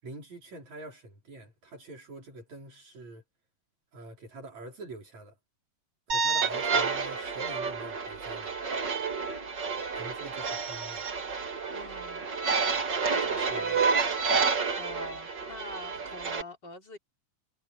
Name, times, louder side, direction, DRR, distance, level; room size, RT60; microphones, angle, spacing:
voice 1, 0.0-3.2 3.9-5.4 6.1-8.5 9.9-11.1 13.5-13.8, right 2 dB, 65° right, 6.1 m, -45 dB
sound 1, 6.1-16.4, right 5 dB, 40° right, 2.5 m, -29 dB
voice 2, 11.7-12.3 13.0-13.8 14.8-17.0, left 3 dB, 35° left, 4.3 m, -45 dB
omnidirectional pair, 3.4 m